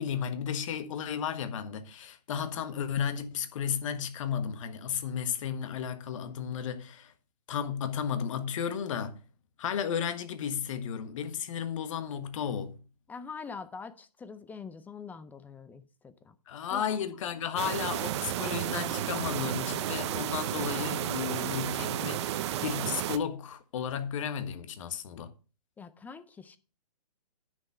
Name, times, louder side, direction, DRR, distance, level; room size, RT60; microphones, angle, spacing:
voice 1, 0.0-7.1 7.5-9.2 9.6-12.8 16.5-25.3, left 8 dB, 50° left, 1.5 m, -33 dB
voice 2, 13.1-16.3 16.7-16.9 25.8-26.6, left 5 dB, 10° left, 0.5 m, -44 dB
sound 1, 17.6-23.2, right 12 dB, 40° right, 0.8 m, -32 dB
9.7 x 6.4 x 5.6 m
hypercardioid pair, 130°, 21 cm